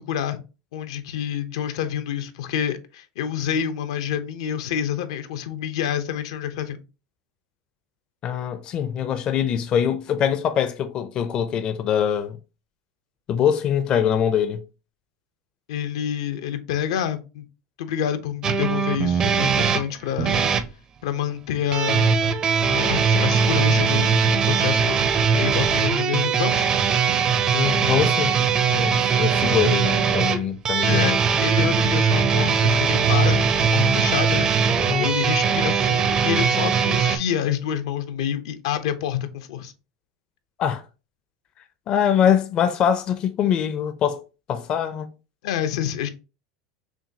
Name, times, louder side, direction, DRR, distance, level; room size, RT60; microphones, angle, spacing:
voice 1, 0.1-0.4 0.7-6.8 15.7-17.5 17.8-20.5 21.0-22.4 22.7-25.0 25.3-26.7 29.6-29.7 30.9-31.1 31.4-39.7 45.4-46.1, left 9 dB, 80° left, 0.6 m, -28 dB
voice 2, 8.2-12.4 13.3-14.6 27.5-28.3 28.7-31.2 34.8-35.1 40.6-40.8 41.9-44.2 44.5-45.1, left 8 dB, 35° left, 0.4 m, -23 dB
sound 1, 18.4-20.7 21.7-37.2, right 6 dB, 25° right, 0.5 m, -20 dB
5.9 x 2.3 x 2.7 m
supercardioid pair, 140°, 3 cm